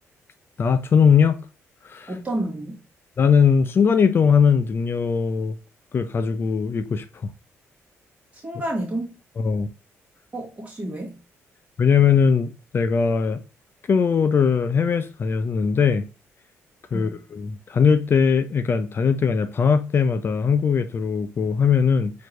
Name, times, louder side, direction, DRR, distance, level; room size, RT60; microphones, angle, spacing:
voice 1, 0.6-1.4 1.9-2.1 3.2-5.6 5.9-7.0 9.4-9.7 11.8-13.4 13.9-16.0 16.9-22.1, left 6 dB, 45° left, 0.4 m, -20 dB
voice 2, 2.1-2.8 8.3-9.1 10.3-11.2 16.9-17.2, right 1 dB, 25° right, 1.4 m, -30 dB
4.4 x 2.7 x 3.0 m
cardioid pair, 85°, 6 cm